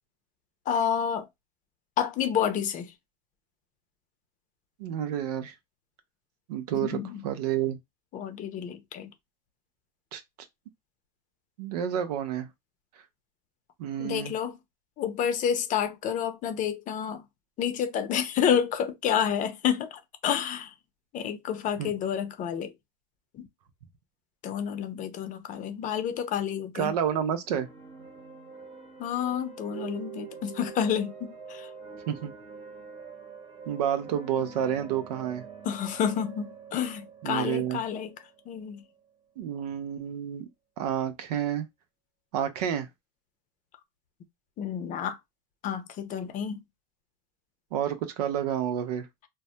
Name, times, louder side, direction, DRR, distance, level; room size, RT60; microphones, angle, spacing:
voice 1, 0.7-1.3 2.0-2.9 6.7-7.2 8.1-9.1 14.0-14.6 15.0-17.2 17.6-20.7 21.1-22.7 23.3-23.5 24.4-27.0 29.0-31.7 35.6-38.1 38.5-38.8 44.6-45.2 45.6-46.6, left 8 dB, 40° left, 0.6 m, -29 dB
voice 2, 4.8-5.5 6.5-7.8 10.1-10.2 11.6-12.5 13.8-14.3 21.8-21.9 26.7-27.7 32.1-32.3 33.7-35.4 37.2-37.8 39.4-40.5 40.8-41.7 42.3-42.9 47.7-49.1, right 9 dB, 85° right, 0.6 m, -29 dB
sound 1, 27.4-39.1, right 6 dB, 30° right, 1.0 m, -45 dB
2.2 x 2.0 x 2.7 m
supercardioid pair, 110°, 20 cm